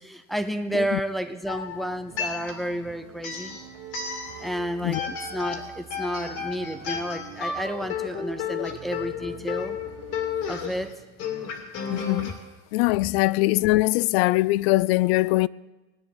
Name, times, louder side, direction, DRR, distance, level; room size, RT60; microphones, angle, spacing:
voice 1, 0.0-3.6 4.4-9.8 10.5-10.9, equal, ahead, 0.7 m, -31 dB
sound 1, 1.5-2.8 3.2-4.6 4.9-12.3, left 6 dB, 45° left, 2.7 m, -33 dB
sound 2, 2.1-10.9, right 11 dB, 40° right, 1.4 m, -46 dB
voice 2, 11.9-12.4 12.7-15.5, left 20 dB, 70° left, 0.5 m, -22 dB
19.0 x 9.7 x 7.3 m
supercardioid pair, 150°, 33 cm